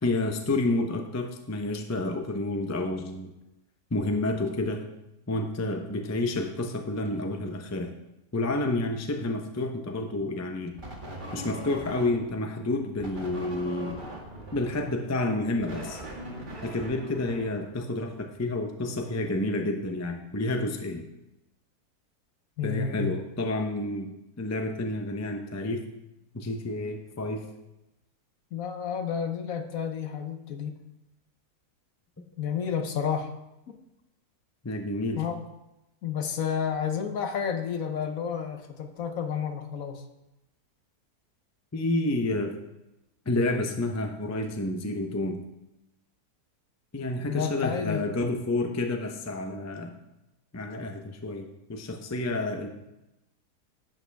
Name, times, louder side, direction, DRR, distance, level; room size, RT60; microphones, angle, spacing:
voice 1, 0.0-3.3 3.9-4.8 5.3-7.9 8.3-10.7 11.3-14.0 14.5-16.0 16.6-21.0 22.6-25.9 26.3-27.4 34.6-35.2 41.7-42.5 43.3-45.4 46.9-50.0 50.5-52.7, left 2 dB, 15° left, 4 dB, 0.5 m, -29 dB
sound 1, 10.8-12.4 13.0-18.1, right 1 dB, 30° right, 1.9 m, -41 dB
voice 2, 22.6-23.1 28.5-30.7 32.4-33.3 33.7-33.8 35.2-35.4 36.0-40.0 47.3-48.0, left 7 dB, 60° left, 7 dB, 1.2 m, -31 dB
11.5 x 8.6 x 3.4 m, 0.93 s
omnidirectional pair, 1.7 m